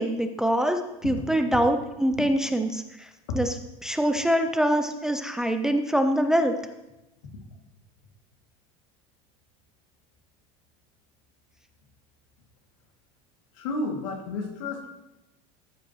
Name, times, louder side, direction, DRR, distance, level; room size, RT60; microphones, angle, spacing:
voice 1, 0.0-3.1 3.3-3.5 3.8-6.5, equal, 5° right, 6 dB, 0.4 m, -24 dB
voice 2, 13.5-14.9, left 3 dB, 80° left, 1 dB, 2.3 m, -31 dB
13.5 x 8.1 x 3.0 m, 0.97 s
cardioid pair, 165°, 16 cm